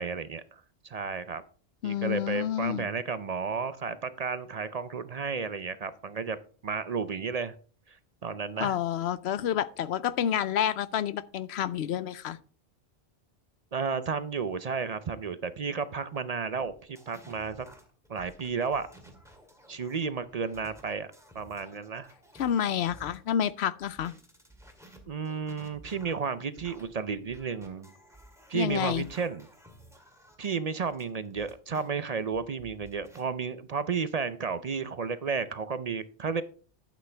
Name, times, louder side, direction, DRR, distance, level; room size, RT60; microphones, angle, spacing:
voice 1, 0.0-1.4 1.8-6.4 6.6-7.5 8.2-8.8 13.7-17.7 18.1-18.9 19.7-21.1 21.3-22.1 25.1-27.9 28.5-29.5 30.4-36.4, right 5 dB, 45° right, 0.5 m, -32 dB
voice 2, 1.8-2.9 8.6-12.4 22.4-24.1 28.5-29.1, left 9 dB, 80° left, 0.8 m, -29 dB
sound 1, 16.7-23.5 24.0-31.9 32.3-33.2, right 1 dB, 5° right, 2.0 m, -54 dB
11.5 x 8.5 x 3.3 m
omnidirectional pair, 1.1 m